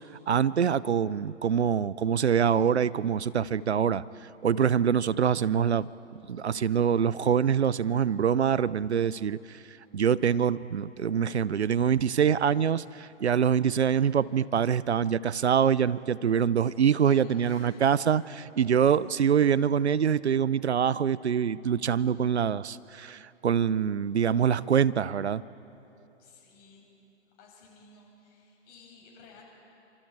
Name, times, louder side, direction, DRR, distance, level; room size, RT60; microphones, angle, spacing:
voice 1, 0.3-4.0 4.4-5.9 6.3-9.6 9.9-25.4, right 8 dB, 65° right, 20 dB, 0.7 m, -25 dB
voice 2, 16.6-18.3 18.8-19.4 26.2-26.9 27.4-29.4, left 4 dB, 25° left, -1 dB, 6.3 m, -55 dB
29.5 x 26.0 x 4.7 m, 2.9 s
figure-of-eight pair, 120°, 36 cm